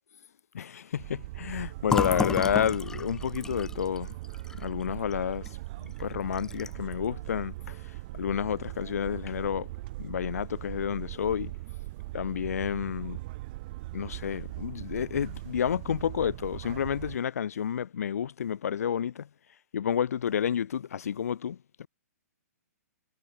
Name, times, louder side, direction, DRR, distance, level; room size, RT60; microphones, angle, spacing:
voice 1, 0.5-4.2 4.5-5.6 6.0-7.8 8.1-9.7 10.0-11.5 12.1-13.2 13.9-19.3 19.7-21.9, left 8 dB, 70° left, 5.7 m, -30 dB
sound 1, 1.0-17.2, right 19 dB, 35° right, 1.7 m, -40 dB
Fill (with liquid), 1.9-5.5 5.9-6.0 6.3-6.9, left 4 dB, 5° left, 1.1 m, -33 dB
hypercardioid pair, 160°, 9 cm